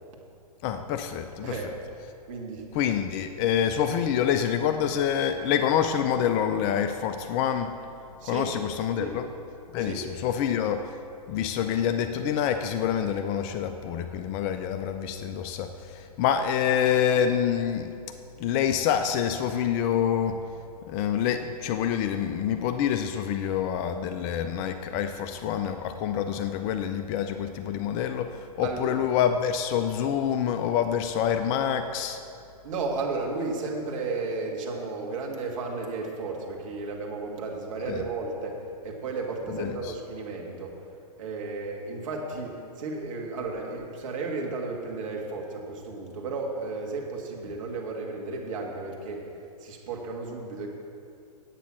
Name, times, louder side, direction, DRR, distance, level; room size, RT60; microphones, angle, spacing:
voice 1, 0.6-1.5 2.7-7.8 8.2-9.2 9.7-10.8 11.3-18.0 18.4-20.4 20.9-32.2 37.9-38.0 39.5-39.9, left 9 dB, 25° left, 8 dB, 0.3 m, -27 dB
voice 2, 2.3-2.6 8.2-8.5 9.0-9.2 9.8-10.0 28.6-29.0 32.6-40.7 41.2-49.2 49.6-50.7, right 3 dB, 55° right, 0 dB, 2.0 m, -33 dB
9.0 x 8.2 x 6.0 m, 2.6 s
figure-of-eight pair, 120°, 20 cm